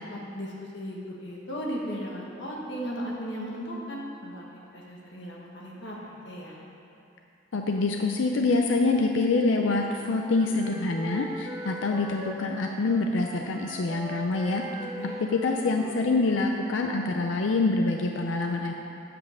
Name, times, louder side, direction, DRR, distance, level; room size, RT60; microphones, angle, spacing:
voice 1, 0.1-6.6 14.8-15.2, equal, 65° left, -3 dB, 1.5 m, -36 dB
voice 2, 7.5-14.6 15.3-18.7, left 3 dB, 85° left, 2 dB, 0.5 m, -25 dB
Wind instrument woodwind instrument, 9.5-17.3, right 1 dB, 20° right, 0.6 m, -42 dB
8.5 x 5.3 x 6.5 m, 2.7 s
head